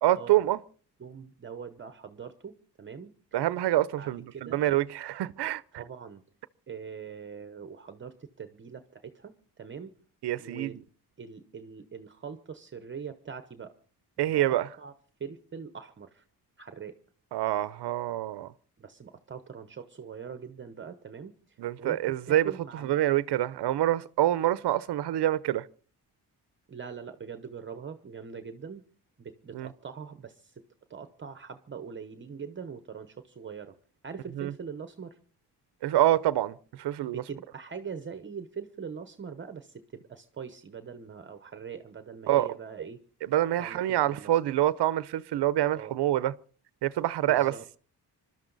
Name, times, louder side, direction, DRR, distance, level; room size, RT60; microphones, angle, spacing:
voice 1, 0.0-0.6 3.3-5.6 10.2-10.7 14.2-14.7 17.3-18.5 21.6-22.5 22.8-25.7 29.5-29.7 34.4-34.5 35.8-37.2 42.3-42.5 43.3-46.3 46.8-47.5, right 13 dB, 80° right, 0.7 m, -26 dB
voice 2, 1.0-3.1 3.9-4.6 5.7-6.2 6.7-9.9 10.4-10.8 11.2-13.7 14.2-14.9 15.2-16.3 16.6-17.0 18.8-23.0 26.7-28.8 29.2-30.6 30.9-33.8 34.0-35.2 37.0-43.0 43.6-44.3 45.7-46.0 47.3-47.6, right 6 dB, 30° right, 0.9 m, -42 dB
26.5 x 12.5 x 4.0 m
wide cardioid pair, 160°, 40 cm